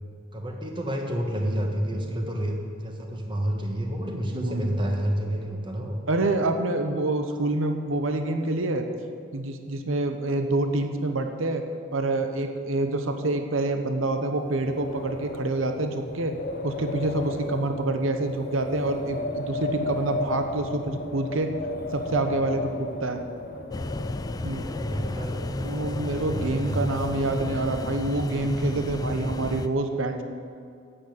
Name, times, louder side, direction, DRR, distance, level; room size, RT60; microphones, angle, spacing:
voice 1, 0.3-6.0 24.6-25.7 26.0-26.8, equal, 25° right, 1 dB, 1.5 m, -30 dB
voice 2, 4.3-4.8 6.1-8.9 9.3-11.6 11.9-16.3 16.6-21.5 21.9-23.2 24.4-24.6 25.6-30.2, right 2 dB, 85° right, 6 dB, 0.9 m, -27 dB
Wind, 14.4-27.0, left 2 dB, 45° left, 0.8 m, -35 dB
sound 1, 23.7-29.7, left 2 dB, 20° left, 0.3 m, -33 dB
10.0 x 8.1 x 8.7 m, 2.3 s
head